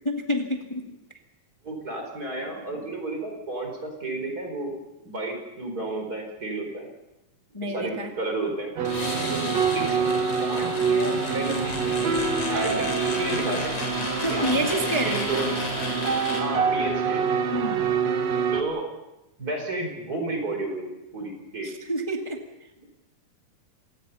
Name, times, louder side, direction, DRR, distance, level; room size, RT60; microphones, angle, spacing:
voice 1, 0.0-0.9 7.5-8.1 9.0-9.6 14.2-15.3 17.5-17.9 21.6-22.4, equal, 15° left, 2 dB, 1.3 m, -29 dB
voice 2, 1.6-4.7 5.0-6.9 7.6-8.7 9.7-10.0 10.4-12.1 12.5-12.9 13.2-13.8 14.2-14.7 15.0-15.5 16.4-17.2 18.5-18.8 19.4-21.7, right 2 dB, 25° right, 3 dB, 5.0 m, -32 dB
sound 1, 8.8-16.4, left 3 dB, 50° left, 5.0 m, -33 dB
sound 2, 8.8-18.6, right 5 dB, 60° right, 2.8 m, -26 dB
27.5 x 19.5 x 5.7 m, 0.98 s
omnidirectional pair, 3.7 m